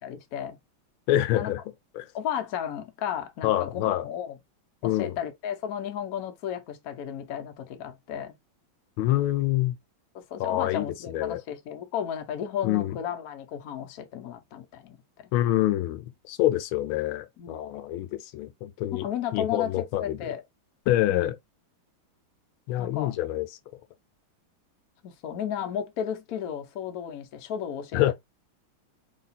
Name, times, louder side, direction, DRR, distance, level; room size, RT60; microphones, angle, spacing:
voice 1, 0.0-0.6 1.3-1.5 2.1-4.3 4.8-8.3 10.1-15.3 17.4-17.6 18.9-20.4 21.1-21.3 22.8-23.1 25.0-28.1, left 9 dB, 60° left, 0.9 m, -34 dB
voice 2, 1.1-1.6 2.0-2.1 3.4-4.1 4.8-5.2 9.0-9.8 10.4-11.4 12.6-13.0 15.3-20.2 20.9-21.3 22.7-23.5 27.9-28.1, left 14 dB, 80° left, 1.4 m, -26 dB
3.9 x 2.3 x 4.0 m
omnidirectional pair, 2.3 m